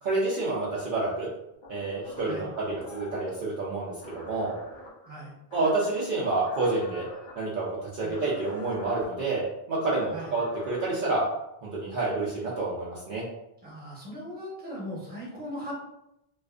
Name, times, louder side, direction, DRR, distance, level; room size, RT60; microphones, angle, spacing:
voice 1, 0.0-1.3 1.7-4.5 5.5-7.1 7.4-11.3 11.6-13.2, right 2 dB, 55° right, -6 dB, 0.7 m, -29 dB
sound 1, 1.6-3.3 4.0-4.9 5.5-5.9 6.4-7.3 8.1-9.0 10.1-10.9, left 1 dB, 50° left, 0.9 m, -45 dB
voice 2, 5.0-5.3 8.0-8.2 10.1-10.3 13.6-15.7, equal, 10° right, -6 dB, 0.8 m, -39 dB
2.5 x 2.3 x 2.4 m, 0.82 s
omnidirectional pair, 1.1 m